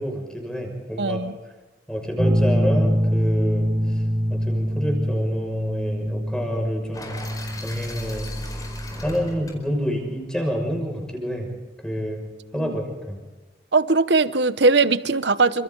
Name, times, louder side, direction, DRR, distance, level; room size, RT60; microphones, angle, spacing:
voice 1, 0.0-1.2 1.9-4.0 4.3-7.2 7.6-8.3 9.0-11.5 11.8-13.2, equal, 5° left, 1 dB, 6.2 m, -28 dB
voice 2, 1.0-1.3 12.5-12.8 13.7-15.6, right 3 dB, 65° right, 13 dB, 1.0 m, -20 dB
sound 1, 2.2-9.4, equal, 15° right, 1.3 m, -24 dB
sound 2, 6.9-11.0, left 1 dB, 20° left, 4.9 m, -38 dB
30.0 x 26.5 x 4.0 m, 1.2 s
head